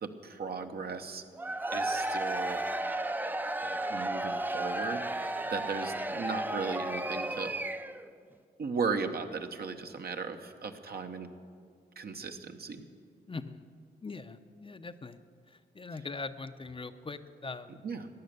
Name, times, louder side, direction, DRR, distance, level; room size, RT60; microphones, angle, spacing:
voice 1, 0.0-1.2 1.7-2.6 3.6-7.5 8.6-11.3 12.0-12.8 17.8-18.1, right 5 dB, 60° right, 6 dB, 1.1 m, -36 dB
Cheering / Crowd, 1.3-8.1, right 1 dB, 10° right, 0.6 m, -33 dB
voice 2, 13.3-13.6 14.0-15.2 15.5-17.8, left 3 dB, 30° left, 10 dB, 0.6 m, -41 dB
15.0 x 10.0 x 6.8 m, 2.2 s
cardioid pair, 55°, 19 cm